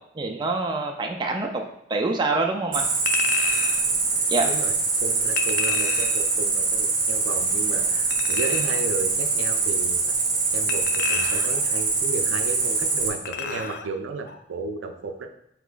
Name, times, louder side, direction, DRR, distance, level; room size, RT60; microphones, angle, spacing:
voice 1, 0.2-1.6 1.9-2.9 4.3-4.5, right 3 dB, 25° right, 2 dB, 0.3 m, -25 dB
Cricket, 2.7-13.1, right 4 dB, 45° right, 0.9 m, -24 dB
Chink clink, 3.1-3.8 5.4-6.3 8.1-8.9 10.7-11.7 13.2-13.9 14.3-14.4, left 6 dB, 55° left, 0.3 m, -30 dB
voice 2, 4.4-10.2 10.5-15.3, right 4 dB, 90° right, 6 dB, 0.4 m, -34 dB
6.0 x 2.9 x 2.4 m, 0.76 s
head